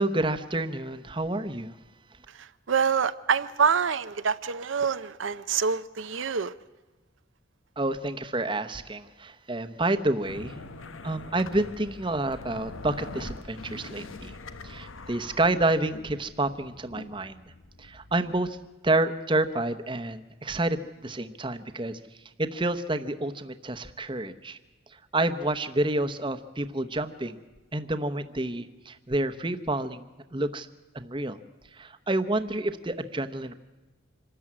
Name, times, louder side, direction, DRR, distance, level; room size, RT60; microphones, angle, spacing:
voice 1, 0.0-1.7 7.8-10.6 11.0-14.3 14.6-17.4 17.8-18.6 18.8-22.0 22.4-24.6 24.9-27.4 27.7-30.1 30.3-30.7 30.9-31.4 31.7-33.5, right 2 dB, 25° right, 9 dB, 0.9 m, -29 dB
voice 2, 2.4-6.5, right 6 dB, 75° right, 12 dB, 0.6 m, -26 dB
sound 1, 10.2-18.7, left 3 dB, 90° left, 1.2 m, -44 dB
26.0 x 13.5 x 9.8 m, 1.2 s
head